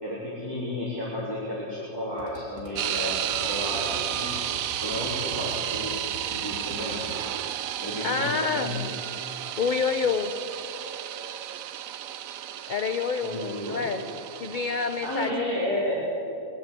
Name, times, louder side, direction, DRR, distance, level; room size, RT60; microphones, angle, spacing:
voice 1, 0.0-4.4 4.8-7.1 7.8-8.9 13.2-13.8 14.9-15.9, left 1 dB, 15° left, -9 dB, 3.5 m, -32 dB
sound 1, 2.2-7.1, right 1 dB, 70° left, 2.9 m, -42 dB
sound 2, 2.8-15.3, right 11 dB, 75° right, 1.0 m, -33 dB
voice 2, 8.0-8.7 9.6-10.3 12.7-14.0 14.4-15.5, left 5 dB, 55° left, 8 dB, 0.5 m, -27 dB
22.5 x 7.8 x 8.2 m, 2.8 s
omnidirectional pair, 1.4 m